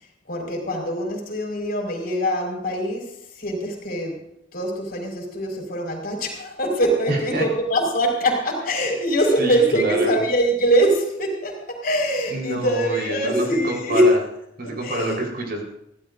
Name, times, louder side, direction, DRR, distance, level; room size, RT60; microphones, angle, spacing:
voice 1, 0.0-4.3 4.5-14.2 14.6-15.2, equal, 50° left, 1 dB, 5.1 m, -23 dB
voice 2, 7.1-7.4 9.4-10.2 12.3-14.2 14.6-15.6, right 2 dB, 50° right, 0 dB, 4.4 m, -26 dB
25.0 x 16.0 x 2.6 m, 0.80 s
head